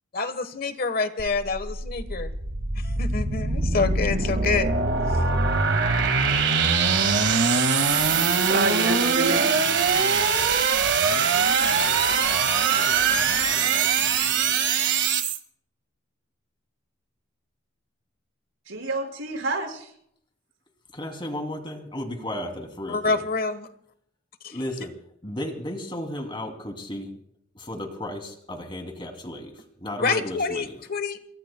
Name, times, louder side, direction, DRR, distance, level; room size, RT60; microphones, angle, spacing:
voice 1, 0.1-2.3 2.8-4.7 22.9-23.7 24.4-24.6 30.0-31.2, left 4 dB, 50° left, 11 dB, 1.2 m, -27 dB
sound 1, 1.2-15.4, right 5 dB, 60° right, 1.9 m, -22 dB
voice 2, 8.5-9.6 18.7-19.8, right 2 dB, 85° right, 3 dB, 5.6 m, -27 dB
voice 3, 20.9-23.2 24.5-24.9 25.2-27.1 27.5-29.5 29.8-30.7, left 1 dB, 25° left, 4 dB, 2.9 m, -34 dB
28.0 x 22.0 x 2.3 m, 0.67 s
head